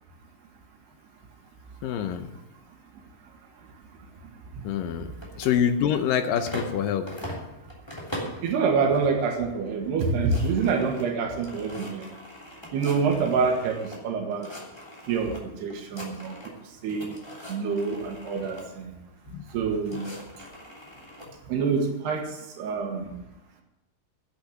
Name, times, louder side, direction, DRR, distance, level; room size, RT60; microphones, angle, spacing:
voice 1, 1.8-2.3 4.6-5.1 5.4-7.1 19.3-19.4, left 8 dB, 70° left, 9 dB, 2.2 m, -25 dB
sound 1, 5.1-6.8 7.1-8.5 8.9-9.3 9.7-9.8 10.0-14.0 14.3-15.4 15.7-16.6 16.9-18.7 19.5-21.3, equal, 10° left, 2.3 m, -41 dB
voice 2, 8.4-12.1 12.7-14.5 15.1-16.3 16.8-17.1 17.5-18.9 19.5-20.1 21.5-23.1, right 5 dB, 85° right, 2 dB, 3.5 m, -26 dB
10.5 x 8.7 x 9.3 m, 0.97 s
omnidirectional pair, 4.7 m